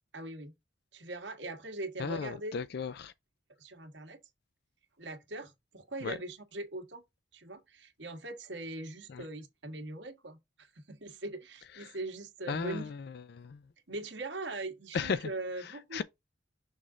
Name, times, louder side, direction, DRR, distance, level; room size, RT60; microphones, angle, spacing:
voice 1, 0.1-0.5 0.9-2.6 3.6-4.2 5.0-7.0 7.3-12.9 13.9-16.0, right 2 dB, 75° right, 1.6 m, -41 dB
voice 2, 2.0-3.1 6.0-6.1 9.1-9.2 12.5-12.9 13.3-13.6 14.9-15.3 15.9-16.0, left 5 dB, 60° left, 0.4 m, -34 dB
6.3 x 3.7 x 4.7 m
head